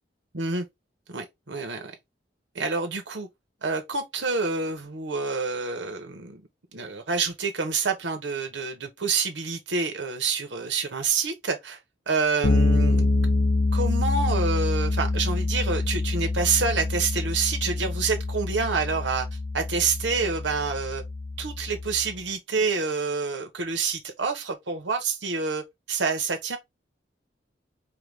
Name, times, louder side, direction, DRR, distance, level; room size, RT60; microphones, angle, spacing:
voice 1, 0.3-0.7 1.1-1.9 2.5-3.3 3.6-6.4 6.7-11.8 12.1-13.1 13.7-19.3 19.5-21.0 21.4-26.6, right 4 dB, 85° right, 1.0 m, -27 dB
Bass guitar, 12.4-22.1, left 2 dB, 85° left, 0.8 m, -26 dB
4.8 x 2.3 x 3.4 m
head